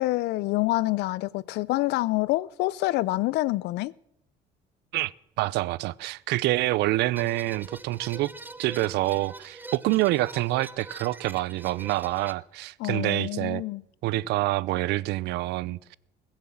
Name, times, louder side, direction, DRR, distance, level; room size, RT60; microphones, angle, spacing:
voice 1, 0.0-3.9 12.8-13.8, left 19 dB, 85° left, 0.5 m, -27 dB
voice 2, 5.4-8.3 8.6-13.6 14.0-16.0, right 17 dB, 85° right, 0.5 m, -27 dB
sound 1, 7.2-12.3, right 2 dB, 10° right, 0.6 m, -44 dB
20.5 x 7.5 x 7.2 m
cardioid pair, 110°, 17 cm